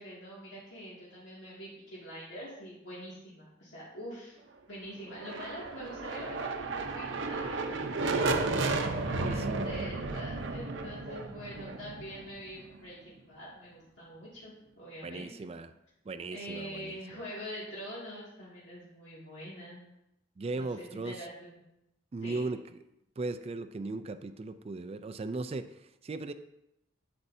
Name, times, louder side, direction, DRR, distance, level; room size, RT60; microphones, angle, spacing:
voice 1, 0.0-4.4 4.7-7.6 8.0-15.5 16.3-19.8 20.5-21.6 22.2-22.4, equal, 75° left, -8 dB, 2.2 m, -45 dB
sound 1, 5.1-12.9, right 3 dB, 70° right, 0.7 m, -33 dB
voice 2, 9.1-9.7 15.0-15.7 16.0-17.2 20.4-21.3 22.1-22.8 23.2-26.3, right 3 dB, 30° right, 10 dB, 0.4 m, -38 dB
8.6 x 8.1 x 2.7 m, 0.86 s
head